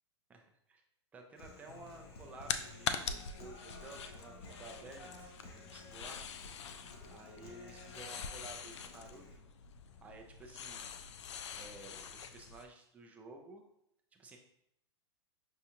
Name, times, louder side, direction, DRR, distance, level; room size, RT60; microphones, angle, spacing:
voice 1, 0.3-0.8 1.1-6.2 7.1-9.5 10.0-10.9 11.5-13.6 14.1-14.4, right 2 dB, 10° right, 2 dB, 0.4 m, -53 dB
Human voice, 1.4-9.4, left 2 dB, 60° left, 0.8 m, -54 dB
sound 1, 1.7-12.6, left 7 dB, 75° left, 0.4 m, -44 dB
5.5 x 2.4 x 2.8 m, 0.75 s
hypercardioid pair, 150°, 15 cm